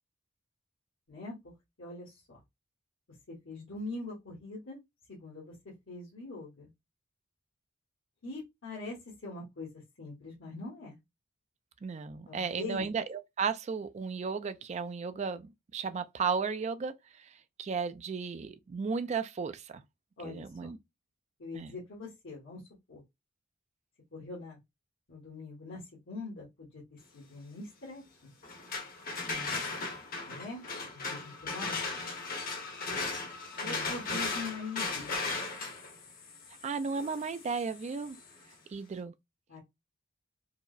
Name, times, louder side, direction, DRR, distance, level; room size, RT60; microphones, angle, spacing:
voice 1, 1.8-2.2 3.3-4.8 5.1-6.7 8.2-9.0 9.2-11.0 12.3-12.8 20.2-20.7 21.4-22.6 22.9-23.0 24.1-24.6 25.1-26.8 27.1-28.3 30.2-31.8 33.6-35.2 39.5-39.6, left 3 dB, 65° left, 1.2 m, -43 dB
voice 2, 11.8-16.9 17.6-19.8 20.2-20.8 21.5-21.7 29.3-29.6 33.6-34.3 36.6-38.2 38.7-39.1, right 5 dB, 35° right, 0.3 m, -35 dB
sound 1, 28.4-38.3, left 3 dB, 45° left, 0.9 m, -37 dB
4.6 x 2.0 x 2.4 m
head